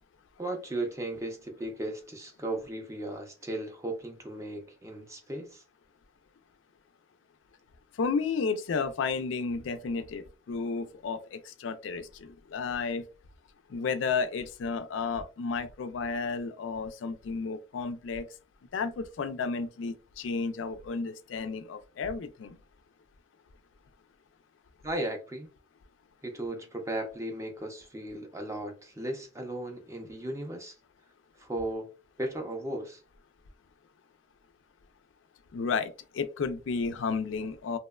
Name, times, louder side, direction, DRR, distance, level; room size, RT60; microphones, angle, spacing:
voice 1, 0.4-5.6 24.8-25.5 26.2-30.7 31.4-31.9 32.2-33.0, right 1 dB, 15° right, 0.5 m, -36 dB
voice 2, 8.0-13.0 13.7-18.3 18.7-22.6 35.5-37.8, left 5 dB, 80° left, 0.4 m, -32 dB
2.8 x 2.1 x 2.2 m
head